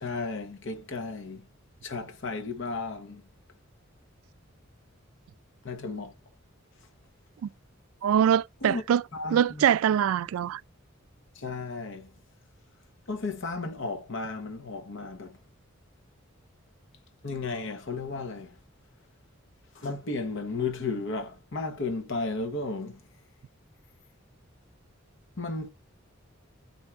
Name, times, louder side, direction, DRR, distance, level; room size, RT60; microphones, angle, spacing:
voice 1, 0.0-1.5 1.8-3.2 5.6-6.1 8.6-8.8 9.1-9.4 11.4-12.1 13.1-15.4 17.2-18.5 19.7-23.0 25.4-25.7, left 3 dB, 65° left, 0.9 m, -34 dB
voice 2, 8.0-9.0 9.3-10.6, right 9 dB, 85° right, 0.3 m, -23 dB
3.5 x 2.7 x 4.4 m
head